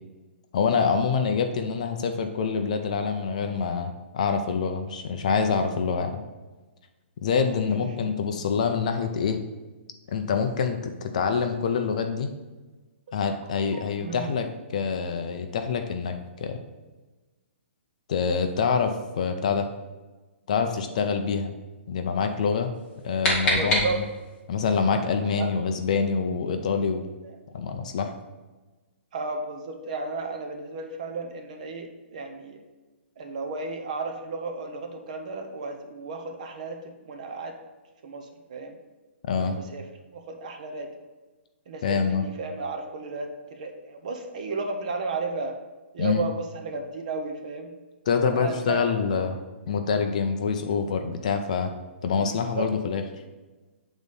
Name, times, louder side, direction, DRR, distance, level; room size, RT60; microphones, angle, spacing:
voice 1, 0.5-6.2 7.2-9.4 10.1-12.3 13.1-16.6 18.1-19.7 20.5-21.5 21.9-22.7 23.0-24.0 24.5-27.0 27.5-28.1 39.3-39.6 41.8-42.2 46.0-46.3 48.1-49.4 49.7-51.7 52.0-53.0, left 5 dB, 35° left, 6 dB, 0.5 m, -26 dB
voice 2, 7.8-8.1 13.1-13.2 13.7-14.3 23.5-24.0 25.2-25.5 27.2-27.3 29.1-32.6 33.2-37.6 38.0-38.8 39.4-39.8 40.1-40.9 41.7-45.5 45.9-47.7 48.3-48.9 52.2-52.7, right 3 dB, 35° right, 4 dB, 0.8 m, -34 dB
sound 1, 22.7-24.4, left 1 dB, 10° left, 1.1 m, -27 dB
8.2 x 4.0 x 5.3 m, 1.2 s
hypercardioid pair, 180°, 7 cm